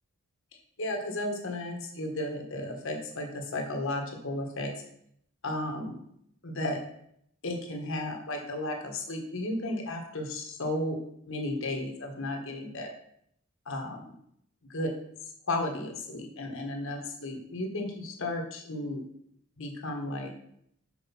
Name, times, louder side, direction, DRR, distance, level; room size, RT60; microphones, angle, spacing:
voice 1, 0.8-4.7 5.4-6.0 6.4-6.8 7.4-11.0 11.3-12.9 13.7-14.0 14.7-14.9 15.5-19.0 19.6-20.3, left 1 dB, 65° left, 2 dB, 1.5 m, -34 dB
6.3 x 4.8 x 5.8 m, 0.71 s
head